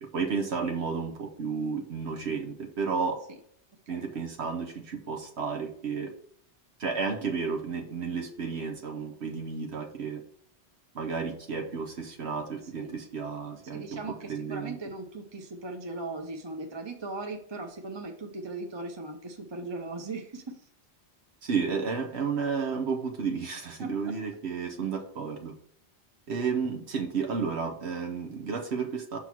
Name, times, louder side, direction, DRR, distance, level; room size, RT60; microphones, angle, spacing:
voice 1, 0.0-3.2 3.9-6.1 6.8-10.2 10.9-14.8 21.4-25.5 26.3-29.2, right 5 dB, 70° right, 4 dB, 1.1 m, -32 dB
voice 2, 13.7-20.6 23.8-24.1, right 3 dB, 30° right, 3 dB, 0.6 m, -38 dB
5.9 x 3.8 x 6.0 m, 0.64 s
omnidirectional pair, 1.2 m